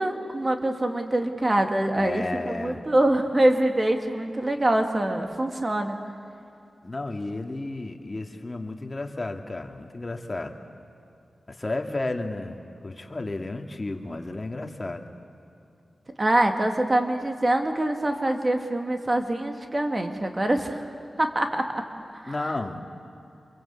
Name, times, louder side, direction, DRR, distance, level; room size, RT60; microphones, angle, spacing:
voice 1, 0.0-6.0 16.2-20.8 21.2-21.8 22.1-22.3, right 1 dB, 30° right, 4 dB, 2.5 m, -24 dB
voice 2, 1.9-2.8 6.8-10.6 11.5-12.6 12.8-15.0 22.3-22.8, left 2 dB, 35° left, 3 dB, 2.3 m, -32 dB
27.5 x 23.0 x 8.5 m, 2.8 s
cardioid pair, 65°, 0 cm